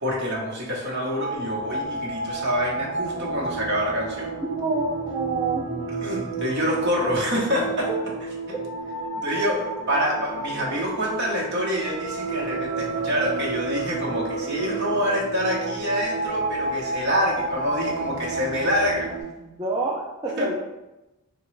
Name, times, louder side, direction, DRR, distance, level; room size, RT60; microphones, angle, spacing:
voice 1, 0.0-4.3 6.0-7.9 9.2-19.1 20.3-20.6, equal, 55° right, -3 dB, 0.9 m, -26 dB
sound 1, 0.8-19.2, right 3 dB, 80° right, 1.0 m, -30 dB
voice 2, 4.4-5.7 7.9-8.0 19.4-20.6, right 3 dB, 20° right, -5 dB, 0.4 m, -28 dB
4.8 x 2.2 x 3.1 m, 0.98 s
head